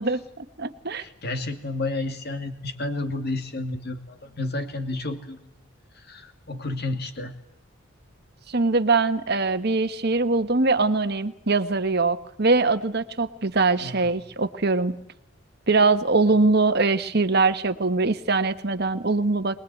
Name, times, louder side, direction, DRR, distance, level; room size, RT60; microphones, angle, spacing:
voice 1, 0.0-1.0 8.5-14.9 15.7-19.6, right 3 dB, 50° right, 10 dB, 1.3 m, -22 dB
voice 2, 1.0-5.5 6.1-7.3 13.8-14.1, left 2 dB, 50° left, 6 dB, 2.6 m, -31 dB
24.0 x 21.0 x 9.4 m, 0.78 s
head